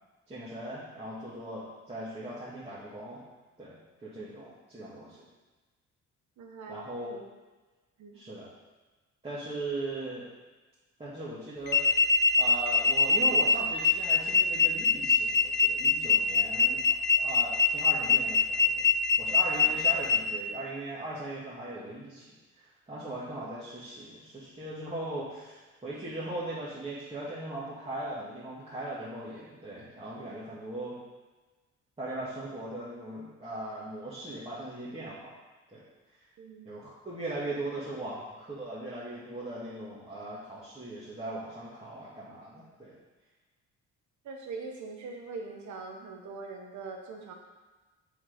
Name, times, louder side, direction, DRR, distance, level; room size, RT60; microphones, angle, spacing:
voice 1, 0.3-3.2 3.6-5.2 6.7-7.1 8.1-8.5 9.2-10.2 11.0-12.0 12.4-18.9 19.2-22.3 22.9-31.0 32.0-35.3 35.7-35.8 36.7-43.0, right 1 dB, 20° right, -10 dB, 2.1 m, -39 dB
voice 2, 6.4-7.2 8.0-8.2 19.6-19.7 36.4-36.7 44.2-47.3, right 4 dB, 70° right, 1 dB, 1.4 m, -42 dB
sound 1, 11.7-20.2, left 5 dB, 35° left, 0.9 m, -23 dB
7.2 x 4.7 x 5.2 m, 1.2 s
cardioid pair, 90°, 30 cm